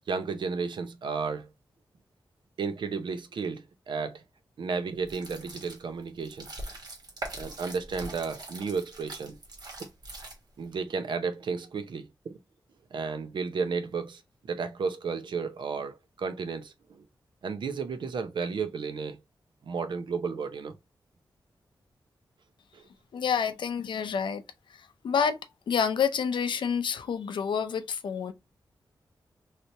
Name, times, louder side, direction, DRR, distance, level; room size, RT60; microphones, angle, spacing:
voice 1, 0.1-1.5 2.6-4.2 4.6-6.6 7.3-9.4 10.6-12.3 12.9-14.2 14.5-17.0 17.4-19.2 19.6-20.7 22.7-22.8, right 5 dB, 75° right, 0.6 m, -33 dB
sound 1, 5.0-10.7, right 2 dB, 60° right, 1.3 m, -42 dB
voice 2, 23.1-24.4 24.7-25.4 25.7-28.3, left 7 dB, 80° left, 0.5 m, -28 dB
3.3 x 2.8 x 2.6 m
wide cardioid pair, 115°, 8 cm